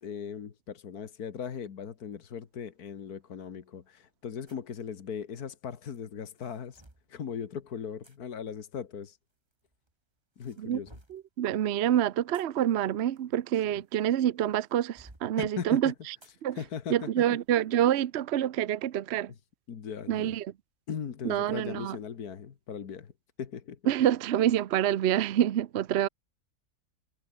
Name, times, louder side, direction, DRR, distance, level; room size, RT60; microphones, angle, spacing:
voice 1, 0.0-6.8 7.1-9.2 10.4-10.9 15.4-15.8 16.6-17.1 19.7-20.3 20.9-23.1 23.4-23.8, left 7 dB, 80° left, 2.0 m, -38 dB
sound 1, 4.5-4.7 5.9-7.1 8.0-8.2 9.3-9.9 10.4-11.3 12.1-14.1 14.6-15.3 16.2-16.4 16.9-17.0 17.5-17.7, right 1 dB, 15° right, 2.5 m, -57 dB
voice 2, 11.1-16.2 16.4-16.6 16.9-19.3 20.1-20.5 21.2-22.0 23.9-26.1, right 11 dB, 55° right, 0.8 m, -27 dB
omnidirectional pair, 1.6 m